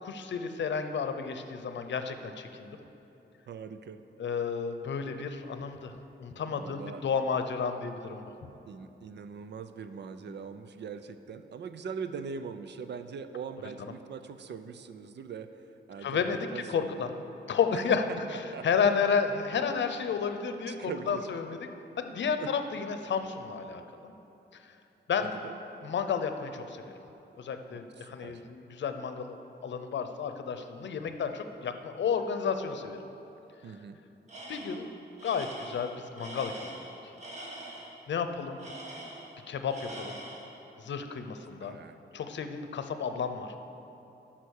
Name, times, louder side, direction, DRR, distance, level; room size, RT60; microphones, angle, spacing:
voice 1, 0.0-2.8 4.2-5.9 6.2-8.3 16.0-17.1 17.5-18.0 18.6-21.6 22.0-24.1 25.1-25.3 25.8-26.9 27.4-29.4 29.6-33.0 34.5-34.9 35.2-36.8 38.1-38.6 39.5-40.2 40.8-41.8 42.1-43.5, left 6 dB, 75° left, 8 dB, 0.7 m, -31 dB
voice 2, 3.5-4.0 6.5-7.0 8.7-17.1 17.7-17.8 18.1-18.7 20.7-21.3 22.4-22.5 25.2-25.6 27.7-28.4 33.6-34.0 41.6-42.0, right 6 dB, 70° right, 10 dB, 0.5 m, -41 dB
Tools, 34.3-34.9 35.2-37.9 38.6-39.4 39.7-40.5, right 1 dB, 40° right, 1.6 m, -43 dB
13.0 x 5.9 x 6.5 m, 3.0 s
wide cardioid pair, 160°, 19 cm